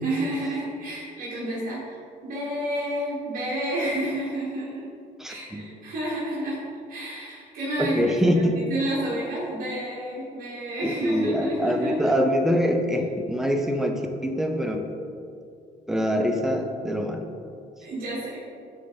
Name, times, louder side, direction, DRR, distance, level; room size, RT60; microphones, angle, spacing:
voice 1, 0.0-4.9 5.3-6.6 6.9-12.1 17.8-18.4, right 1 dB, 55° right, -7 dB, 1.4 m, -30 dB
voice 2, 5.2-5.7 7.8-8.6 10.8-14.9 15.9-17.3, equal, ahead, 4 dB, 0.6 m, -24 dB
8.9 x 3.3 x 3.9 m, 2.4 s
cardioid pair, 110°, 17 cm